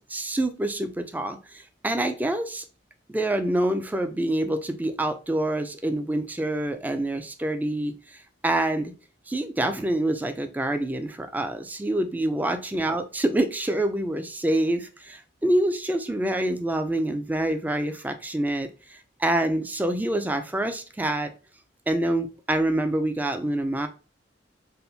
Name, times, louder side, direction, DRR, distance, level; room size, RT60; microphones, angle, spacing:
voice 1, 0.0-2.6 3.1-7.9 8.4-8.9 9.3-21.3 21.9-23.9, right 1 dB, 10° right, 8 dB, 0.3 m, -26 dB
3.5 x 2.5 x 2.6 m, 0.35 s
head